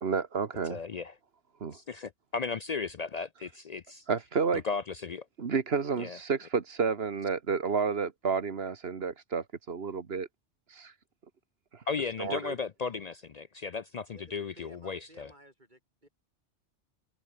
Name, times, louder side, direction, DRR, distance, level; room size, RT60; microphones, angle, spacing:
voice 1, 0.0-0.8 1.6-1.8 4.1-4.6 5.4-10.3 10.7-10.9 11.7-11.8 12.2-12.5, right 5 dB, 60° right, 1.5 m, -30 dB
voice 2, 0.7-1.1 1.7-4.1 4.5-5.3 6.0-6.2 11.9-15.3, left 5 dB, 50° left, 0.5 m, -35 dB
voice 3, 14.1-16.1, right 1 dB, 40° right, 7.7 m, -57 dB
omnidirectional pair, 1.2 m